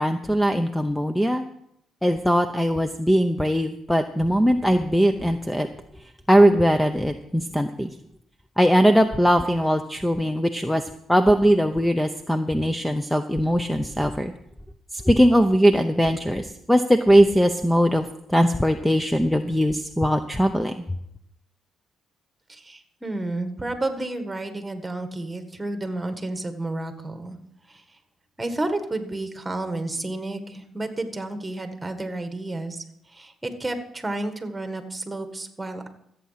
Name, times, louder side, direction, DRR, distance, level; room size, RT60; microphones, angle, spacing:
voice 1, 0.0-1.4 2.0-5.7 6.3-7.9 8.6-10.8 11.1-14.3 14.9-20.7, equal, 5° left, 8 dB, 0.7 m, -20 dB
voice 2, 22.5-27.4 27.7-27.8 28.4-32.8 33.1-35.9, right 2 dB, 15° right, 7 dB, 1.7 m, -31 dB
14.0 x 8.4 x 5.8 m, 0.76 s
cardioid pair, 90°, 0 cm